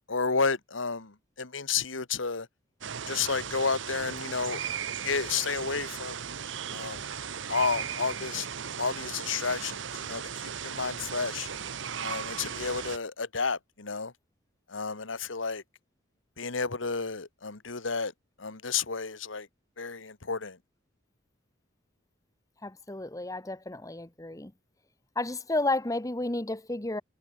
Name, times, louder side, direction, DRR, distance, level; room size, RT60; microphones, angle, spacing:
voice 1, 0.1-2.5 3.1-4.6 5.0-6.2 6.7-7.0 7.5-8.5 8.8-10.2 10.6-11.5 12.0-14.1 14.7-15.6 16.4-18.1 18.4-19.5 19.8-20.6, left 5 dB, 75° left, 1.7 m, -31 dB
sound 1, 2.8-13.0, right 7 dB, 65° right, 0.9 m, -37 dB
voice 2, 22.6-24.5 25.1-27.0, left 2 dB, 15° left, 1.2 m, -32 dB
head